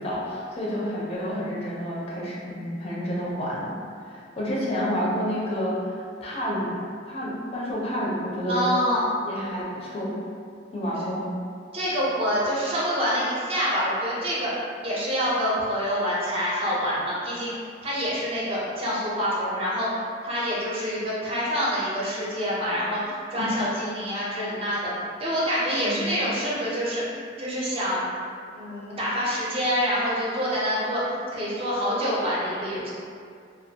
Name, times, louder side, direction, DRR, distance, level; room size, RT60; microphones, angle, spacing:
voice 1, 0.0-3.7 4.0-6.7 7.1-8.7 9.2-10.2 10.7-11.3 23.4-23.5 25.8-26.1, equal, 35° left, -6 dB, 0.4 m, -29 dB
voice 2, 8.5-9.0 11.7-14.5 14.8-17.5 17.8-19.9 20.2-24.9 25.2-28.0 28.5-32.9, equal, 30° right, -7 dB, 0.5 m, -26 dB
2.2 x 2.1 x 2.7 m, 2.3 s
head